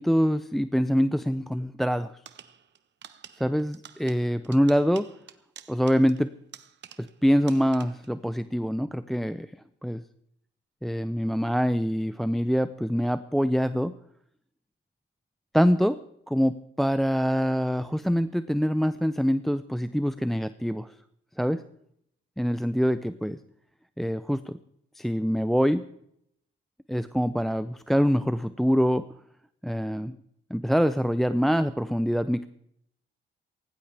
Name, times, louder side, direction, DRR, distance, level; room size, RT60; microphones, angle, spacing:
voice 1, 0.0-2.2 3.4-5.1 5.7-6.3 7.0-9.5 9.8-10.0 10.8-14.0 15.5-16.0 16.3-20.9 21.4-21.6 22.4-23.4 24.0-24.6 25.0-25.8 26.9-29.0 29.6-30.2 30.5-32.5, equal, ahead, 12 dB, 0.5 m, -25 dB
sound 1, 2.3-7.2 7.5-8.2, right 9 dB, 60° right, 1.1 m, -49 dB
18.0 x 16.0 x 3.4 m, 0.72 s
cardioid pair, 90°, 20 cm